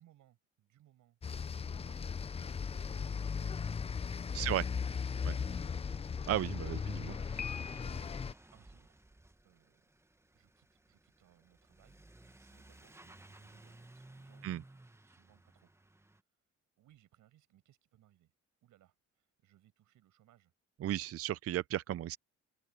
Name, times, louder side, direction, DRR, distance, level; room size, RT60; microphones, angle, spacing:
voice 1, 0.0-2.6 2.8-5.9 6.7-7.1 8.5-9.0 9.4-9.8 10.3-14.7 15.0-15.7 16.8-18.3 18.6-20.5, right 13 dB, 85° right, 6.1 m, -67 dB
sound 1, 1.2-8.3, left 6 dB, 20° left, 0.4 m, -37 dB
Truck / Accelerating revving vroom, 3.7-16.2, right 2 dB, 10° right, 1.2 m, -59 dB
voice 2, 6.3-7.1 14.4-14.6 20.8-22.2, right 12 dB, 50° right, 0.5 m, -34 dB
Piano, 7.4-8.3, left 7 dB, 65° left, 1.8 m, -44 dB
open air
cardioid pair, 90°, 30 cm